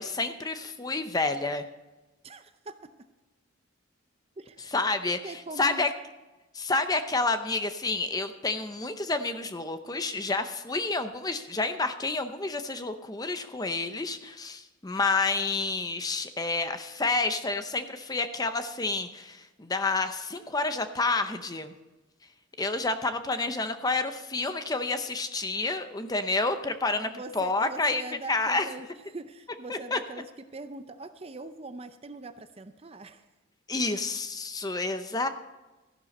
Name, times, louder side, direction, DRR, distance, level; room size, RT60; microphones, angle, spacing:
voice 1, 0.0-1.6 4.7-5.9 6.5-21.7 22.6-27.1 27.3-28.0 28.3-28.7 29.7-30.0 33.7-35.3, left 3 dB, 20° left, 9 dB, 0.6 m, -29 dB
voice 2, 2.2-2.9 4.4-4.7 5.1-6.0 27.0-30.3 30.5-33.2, right 2 dB, 30° right, 10 dB, 0.6 m, -42 dB
14.0 x 11.5 x 4.2 m, 1.1 s
head